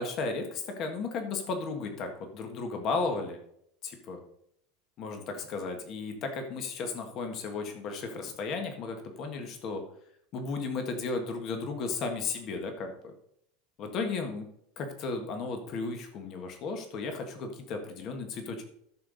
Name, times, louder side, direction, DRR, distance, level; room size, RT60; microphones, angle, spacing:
voice 1, 0.0-3.4 3.8-4.2 5.0-9.8 10.3-13.1 13.8-14.5 14.8-18.6, left 4 dB, 30° left, 5 dB, 1.6 m, -34 dB
14.0 x 6.8 x 4.0 m, 0.72 s
supercardioid pair, 175°, 0 cm